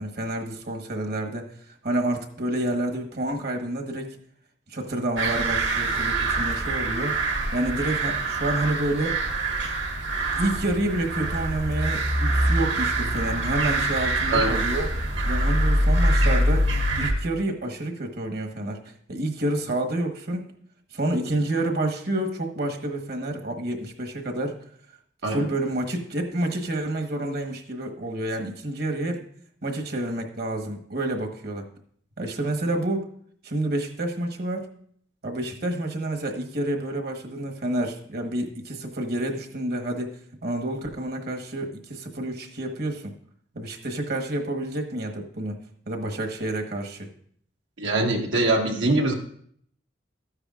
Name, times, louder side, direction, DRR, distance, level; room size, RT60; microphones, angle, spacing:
voice 1, 0.0-1.5 1.8-4.2 4.7-7.1 7.5-9.2 10.4-14.9 15.2-16.7 17.0-18.8 19.1-20.5 20.9-24.6 25.3-29.2 29.6-31.7 32.2-33.1 33.4-34.7 35.2-43.1 43.5-45.6 45.9-47.1, right 1 dB, 60° right, 4 dB, 1.3 m, -29 dB
sound 1, 5.2-17.1, right 1 dB, 75° right, 1.7 m, -24 dB
voice 2, 47.8-49.1, right 2 dB, 90° right, 2 dB, 1.5 m, -23 dB
13.0 x 9.7 x 2.4 m, 0.63 s
head